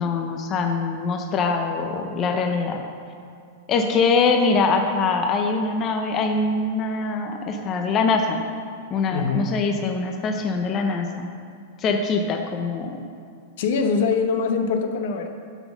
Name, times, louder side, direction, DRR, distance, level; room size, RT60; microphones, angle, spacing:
voice 1, 0.0-2.8 3.7-8.4 8.9-11.3 11.8-13.0, left 4 dB, 30° left, 3 dB, 0.6 m, -23 dB
voice 2, 9.1-9.6 13.6-15.3, left 5 dB, 65° left, 6 dB, 0.8 m, -23 dB
9.1 x 4.0 x 5.9 m, 2.3 s
supercardioid pair, 145°, 0 cm